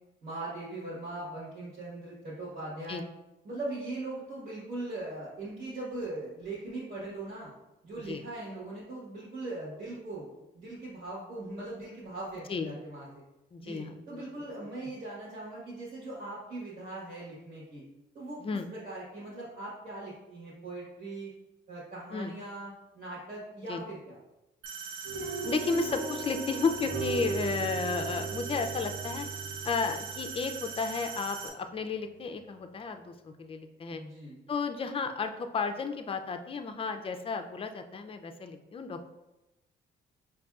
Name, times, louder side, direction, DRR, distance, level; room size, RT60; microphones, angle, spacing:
voice 1, 0.2-3.0 3.4-7.5 7.8-10.3 10.5-13.1 13.6-17.8 18.1-18.4 18.7-21.3 21.7-24.2 33.9-34.4, right 2 dB, 45° right, -8 dB, 1.4 m, -40 dB
voice 2, 12.5-12.8 13.5-14.4 18.4-18.7 22.1-22.3 23.7-23.8 25.4-29.3 29.6-34.0 34.5-39.0, left 4 dB, 30° left, 7 dB, 0.4 m, -33 dB
sound 1, 24.6-31.5, right 6 dB, 85° right, 0.6 m, -41 dB
sound 2, 25.0-31.3, right 5 dB, 65° right, 1.1 m, -38 dB
5.0 x 2.6 x 2.4 m, 0.97 s
cardioid pair, 90°, 20 cm